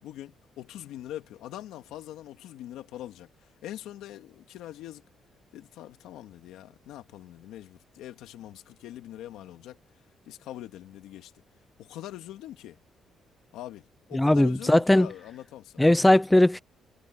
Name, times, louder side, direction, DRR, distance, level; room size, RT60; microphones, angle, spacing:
voice 1, 0.0-3.3 3.6-5.0 5.5-9.8 10.3-11.3 11.8-12.8 13.5-13.8 14.1-15.9, left 13 dB, 90° left, 2.3 m, -43 dB
voice 2, 14.1-15.1 15.8-16.6, left 1 dB, 10° left, 0.7 m, -19 dB
cardioid pair, 90°, 0 cm